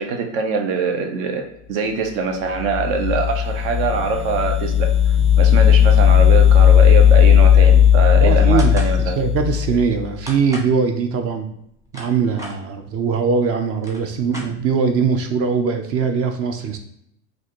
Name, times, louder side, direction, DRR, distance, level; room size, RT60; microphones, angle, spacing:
voice 1, 0.0-4.9 5.4-9.2, right 4 dB, 70° right, 4 dB, 0.8 m, -23 dB
sound 1, 2.5-10.1, left 9 dB, 20° left, 0.3 m, -14 dB
voice 2, 8.2-8.7 9.2-11.5 11.9-16.8, right 5 dB, 40° right, 6 dB, 0.5 m, -21 dB
sound 2, 8.6-9.0 10.3-10.7 11.6-12.6 13.4-13.5 13.7-14.9, equal, 10° right, 0.9 m, -35 dB
4.0 x 2.5 x 3.0 m, 0.74 s
supercardioid pair, 110°, 38 cm